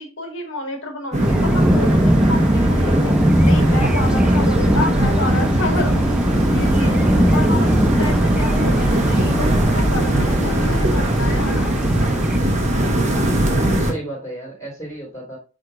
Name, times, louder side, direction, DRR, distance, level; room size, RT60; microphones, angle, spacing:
voice 1, 0.0-3.1 3.4-6.2 6.5-7.0 7.3-11.7, left 2 dB, 60° left, 2 dB, 2.1 m, -29 dB
sound 1, 1.1-13.9, right 1 dB, 35° right, 1.4 m, -20 dB
sound 2, 1.2-12.4, equal, 5° right, 0.3 m, -20 dB
voice 2, 13.1-15.4, right 1 dB, 15° left, -8 dB, 3.8 m, -31 dB
9.7 x 3.9 x 2.6 m, 0.32 s
head